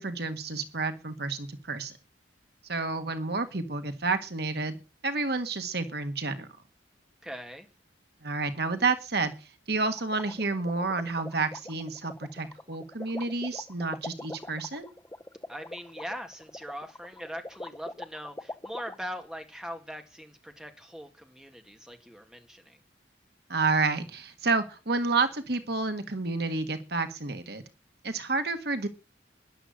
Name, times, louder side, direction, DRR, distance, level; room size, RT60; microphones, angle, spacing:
voice 1, 0.0-1.9 2.6-4.8 5.0-6.5 8.2-9.3 9.7-14.9 23.5-27.6 28.0-28.9, right 3 dB, 60° right, 1.7 m, -30 dB
voice 2, 7.2-7.7 15.5-22.8, equal, 5° right, 2.1 m, -41 dB
sound 1, 9.8-18.9, left 1 dB, 15° left, 0.8 m, -42 dB
13.5 x 11.0 x 6.4 m
head